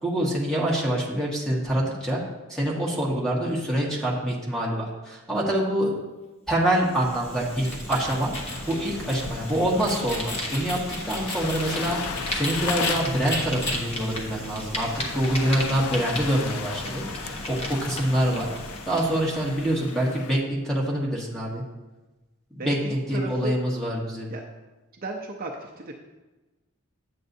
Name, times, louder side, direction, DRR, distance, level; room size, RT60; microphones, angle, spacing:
voice 1, 0.0-2.2 2.5-5.9 6.5-8.3 8.7-10.8 11.0-18.5 18.9-21.6 22.5-24.3, right 1 dB, 5° left, -4 dB, 1.5 m, -26 dB
Fire, 6.6-20.0, equal, 25° left, 1.0 m, -36 dB
sound 1, 7.4-12.9 13.3-13.7, left 2 dB, 50° left, 2.3 m, -34 dB
sound 2, 8.5-20.4, left 7 dB, 80° left, 0.4 m, -37 dB
voice 2, 22.6-23.6 24.3-24.4 25.0-25.9, right 2 dB, 40° right, 0 dB, 0.6 m, -34 dB
9.3 x 7.5 x 2.7 m, 1.1 s
head